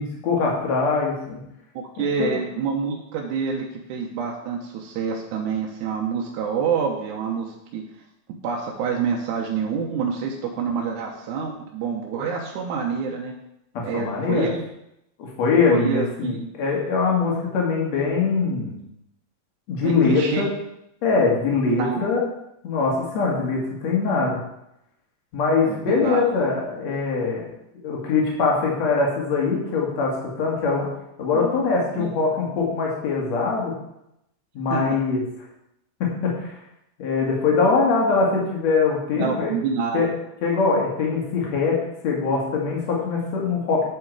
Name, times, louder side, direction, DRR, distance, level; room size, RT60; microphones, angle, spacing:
voice 1, 0.0-1.4 2.0-2.3 13.7-14.5 15.2-18.8 19.7-20.5 21.0-22.2 22.6-24.4 25.3-27.5 27.7-30.9 31.2-33.7 34.5-35.2 36.0-36.6 37.0-39.5 39.9-40.1 40.4-41.8 42.0-43.9, left 4 dB, 65° left, -2 dB, 3.3 m, -22 dB
voice 2, 1.8-7.8 8.4-13.3 13.8-14.6 15.7-16.4 19.8-20.5 21.7-22.0 25.7-26.3 31.3-31.5 32.0-32.1 34.7-34.8 39.2-40.0, right 6 dB, 85° right, 0 dB, 2.4 m, -27 dB
9.3 x 7.4 x 4.8 m, 0.82 s
omnidirectional pair, 3.4 m